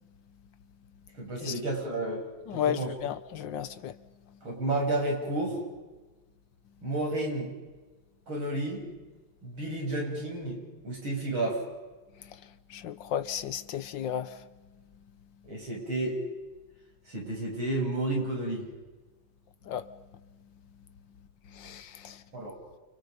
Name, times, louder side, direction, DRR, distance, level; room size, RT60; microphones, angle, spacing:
voice 1, 1.1-2.2 2.5-2.9 4.4-5.6 6.8-7.5 8.3-8.8 9.4-11.6 15.4-16.2 17.1-18.7 22.3-22.6, right 2 dB, 90° right, 8.3 m, -31 dB
voice 2, 2.5-4.0 12.2-14.5 19.7-19.9 21.5-22.2, left 9 dB, 65° left, 1.7 m, -34 dB
29.5 x 29.5 x 5.3 m
omnidirectional pair, 2.2 m